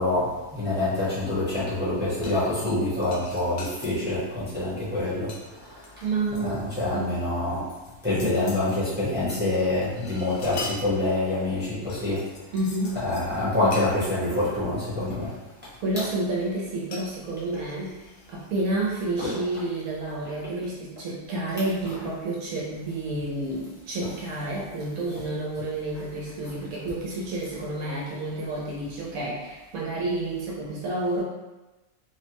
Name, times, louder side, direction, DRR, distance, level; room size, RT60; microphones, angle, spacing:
voice 1, 0.0-5.8 6.4-7.6 8.0-12.2 13.0-15.3 19.2-19.3, left 2 dB, 10° right, -10 dB, 0.8 m, -26 dB
sound 1, 2.2-2.7 3.0-3.9 4.5-4.7 5.0-6.9 7.2-7.3 7.7-9.4 9.7-11.5 11.9-13.3 13.7-13.9 14.4-14.5 15.1-15.7 16.9-18.7 19.0-19.2, left 3 dB, 65° left, 0.5 m, -42 dB
voice 2, 6.0-7.1 8.2-8.4 12.5-13.0 15.8-31.2, right 2 dB, 85° right, -5 dB, 1.1 m, -30 dB
3.2 x 2.1 x 2.9 m, 1.1 s
omnidirectional pair, 1.5 m